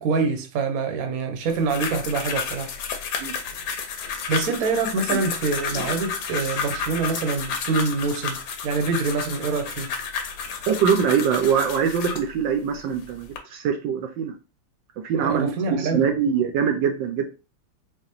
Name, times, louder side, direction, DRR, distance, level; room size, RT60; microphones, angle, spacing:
voice 1, 0.0-2.7 4.3-9.9 15.2-16.1, right 4 dB, 60° right, 1.1 m, -25 dB
sound 1, 1.5-12.3 12.9-13.4, left 5 dB, 85° left, 1.5 m, -31 dB
voice 2, 10.7-14.3 15.0-17.2, right 7 dB, 80° right, 1.3 m, -23 dB
4.7 x 2.5 x 3.0 m
omnidirectional pair, 2.1 m